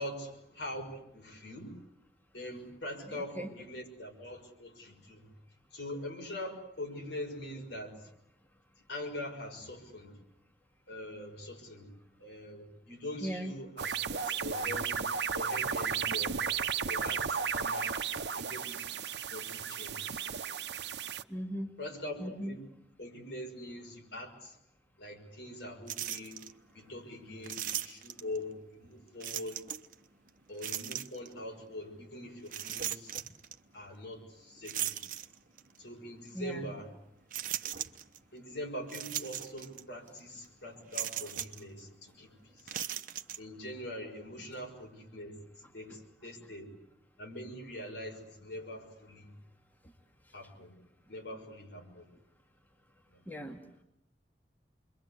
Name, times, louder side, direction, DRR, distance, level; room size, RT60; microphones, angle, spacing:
voice 1, 0.0-1.8 2.3-5.3 5.7-8.1 8.9-10.2 10.9-11.9 12.2-15.1 15.3-16.4 16.8-18.0 18.4-18.8 19.3-20.2 21.8-22.6 23.0-24.6 25.0-26.4 26.7-29.6 30.5-33.2 33.7-35.0 35.8-36.9 38.3-42.8 43.4-46.7 47.2-49.3 50.3-50.7 51.1-52.1 53.1-53.2, left 1 dB, 75° left, 2 dB, 6.1 m, -43 dB
voice 2, 3.1-3.5 13.2-13.5 21.3-21.7 22.2-22.6 36.3-36.7 53.3-53.6, equal, 10° left, 1 dB, 2.3 m, -38 dB
sound 1, 13.8-21.2, right 6 dB, 70° right, 0.9 m, -34 dB
sound 2, 25.9-26.5 27.4-28.4 29.2-29.9 30.6-31.3 32.5-33.5 34.6-35.7 36.3-36.4 37.3-38.2 38.9-39.8 40.1-40.2 40.9-41.6 42.6-43.4, right 11 dB, 50° right, 1.0 m, -37 dB
28.0 x 23.0 x 8.3 m, 0.81 s
head